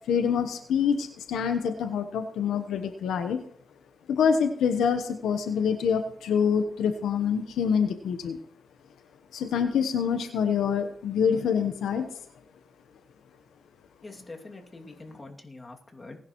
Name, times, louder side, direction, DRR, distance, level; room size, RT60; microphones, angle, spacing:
voice 1, 0.1-3.4 4.1-8.4 9.3-12.1, left 7 dB, 90° left, 7 dB, 1.0 m, -26 dB
voice 2, 14.0-16.2, left 2 dB, 30° left, 2 dB, 2.4 m, -44 dB
19.5 x 10.5 x 3.1 m, 0.64 s
cardioid pair, 65°, 0 cm